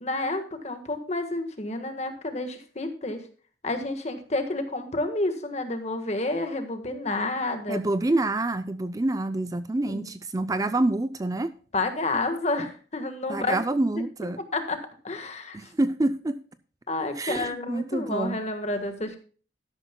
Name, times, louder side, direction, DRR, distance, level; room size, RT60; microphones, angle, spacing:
voice 1, 0.0-3.3 3.6-7.8 9.9-10.1 11.7-13.5 14.5-15.7 16.9-19.2, left 2 dB, 40° left, 7 dB, 1.5 m, -30 dB
voice 2, 7.7-11.5 13.3-14.4 15.5-16.4 17.2-18.4, right 2 dB, 20° right, 12 dB, 0.4 m, -27 dB
12.5 x 11.5 x 2.2 m, 0.39 s
head